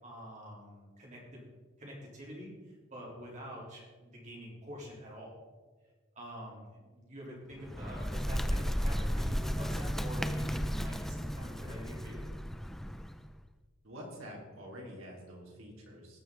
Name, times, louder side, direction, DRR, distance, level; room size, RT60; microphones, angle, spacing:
voice 1, 0.0-1.4 1.8-5.3 6.2-12.2, equal, 35° right, -4 dB, 3.7 m, -46 dB
Bird, 7.5-13.3, equal, ahead, 0.4 m, -34 dB
voice 2, 13.8-16.2, equal, 75° right, -2 dB, 3.3 m, -47 dB
19.0 x 7.0 x 4.0 m, 1.4 s
head